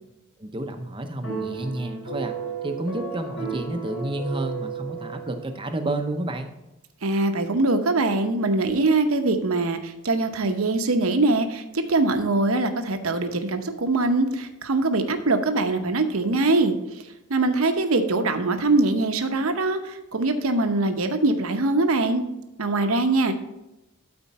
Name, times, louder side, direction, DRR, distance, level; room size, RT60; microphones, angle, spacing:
voice 1, 0.4-2.4 2.6-6.5, right 1 dB, 25° right, 6 dB, 0.6 m, -30 dB
sound 1, 1.2-5.7, right 5 dB, 75° left, 3.4 m, -33 dB
voice 2, 7.0-16.7 17.3-22.2 22.6-23.4, right 2 dB, 75° right, 6 dB, 0.9 m, -22 dB
12.5 x 4.4 x 4.2 m, 0.94 s
head